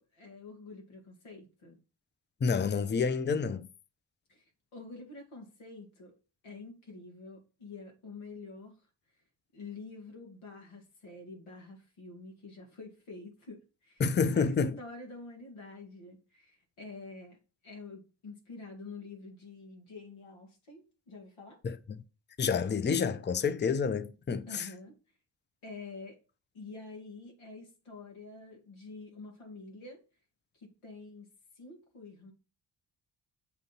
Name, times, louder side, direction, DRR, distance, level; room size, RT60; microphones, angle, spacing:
voice 1, 0.0-1.8 4.3-4.4 4.7-6.1 6.4-8.8 9.5-17.4 17.6-21.6 24.5-25.0 25.6-26.2 26.5-30.0 30.5-31.3 31.6-32.3, left 3 dB, 85° left, 1.9 m, -47 dB
voice 2, 2.4-3.7 14.0-14.8 21.6-21.8 22.4-24.7, left 5 dB, 25° left, 0.5 m, -29 dB
7.0 x 2.6 x 5.6 m
supercardioid pair, 45°, 48 cm